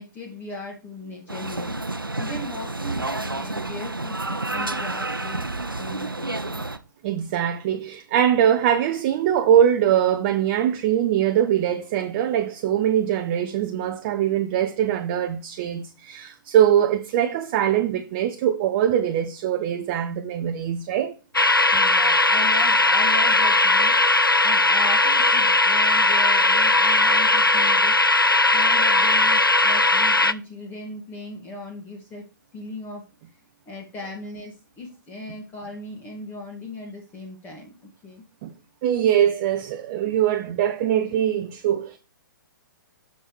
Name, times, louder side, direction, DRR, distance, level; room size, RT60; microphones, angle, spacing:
voice 1, 0.0-1.7 2.2-5.5 5.8-6.6 21.7-23.9 24.4-28.0 28.5-32.2 32.5-33.0 33.7-37.7 38.0-38.2, left 2 dB, 15° left, 1.8 m, -37 dB
sound 1, 1.3-6.8, right 2 dB, 85° right, 0.8 m, -30 dB
voice 2, 7.0-21.2 38.4-38.5 38.8-42.0, right 10 dB, 30° right, 0.7 m, -22 dB
sound 2, 21.3-30.3, left 2 dB, 90° left, 0.5 m, -18 dB
6.8 x 5.3 x 4.7 m
figure-of-eight pair, 120°, 11 cm